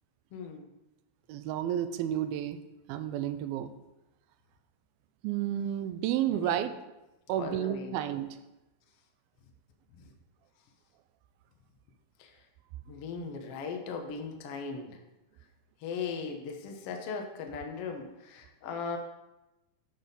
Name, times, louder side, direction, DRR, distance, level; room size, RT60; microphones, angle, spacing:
voice 1, 0.3-0.6 6.3-6.6 7.4-7.9 10.0-10.1 12.2-12.4 12.8-15.0 15.8-19.0, left 5 dB, 90° left, 3 dB, 1.3 m, -38 dB
voice 2, 1.3-2.6 2.9-3.7 5.2-6.7 7.3-8.4, right 11 dB, 85° right, 11 dB, 2.4 m, -31 dB
11.5 x 4.2 x 5.2 m, 0.98 s
omnidirectional pair, 4.4 m